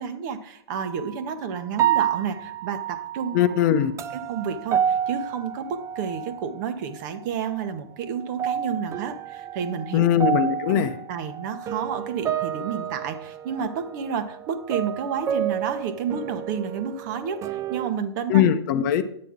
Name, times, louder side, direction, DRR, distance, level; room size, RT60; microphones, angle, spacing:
voice 1, 0.0-3.4 4.3-10.1 10.7-18.4, right 7 dB, 45° right, 1.1 m, -30 dB
sound 1, 0.8-1.2 1.7-6.6 6.9-7.7 8.1-17.9, right 9 dB, 20° right, 0.5 m, -30 dB
voice 2, 3.3-3.9 9.9-11.0 18.3-19.0, left 10 dB, 45° left, 0.8 m, -20 dB
9.6 x 9.0 x 3.7 m
figure-of-eight pair, 115°, 14 cm